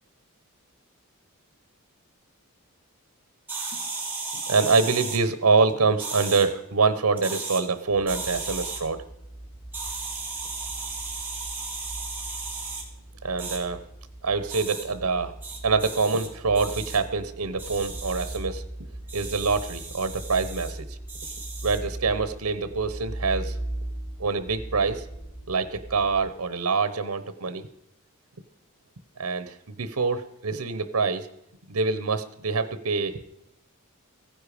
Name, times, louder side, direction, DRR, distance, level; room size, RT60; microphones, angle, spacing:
sound 1, 3.5-5.2 6.0-6.5 7.1-7.6 8.1-8.8 9.7-12.8 13.4-13.6 14.5-14.8 15.4-16.3 16.5-17.0 17.6-18.4 19.1-20.7 21.1-21.8, right 4 dB, 10° right, 2.8 m, -35 dB
voice 1, 4.3-9.0 13.2-13.8 14.2-15.3 15.6-18.6 19.1-21.0 21.6-23.6 24.2-25.1 25.5-27.7 29.2-31.3 31.7-33.2, right 4 dB, 80° right, 12 dB, 0.8 m, -25 dB
sound 2, 7.9-26.2, right 1 dB, 45° left, 6.2 m, -39 dB
15.5 x 10.0 x 5.0 m, 0.82 s
head